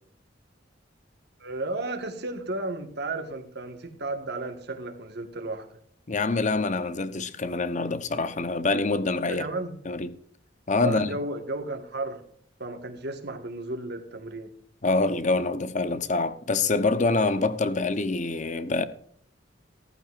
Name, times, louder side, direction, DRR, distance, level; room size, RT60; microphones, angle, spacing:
voice 1, 1.4-5.8 9.3-9.7 10.8-12.2 12.6-14.5, right 2 dB, 60° right, 1.7 m, -33 dB
voice 2, 6.1-9.5 9.8-10.2 10.7-11.1 14.8-18.9, left 3 dB, 40° left, 0.9 m, -25 dB
15.5 x 14.0 x 2.5 m
head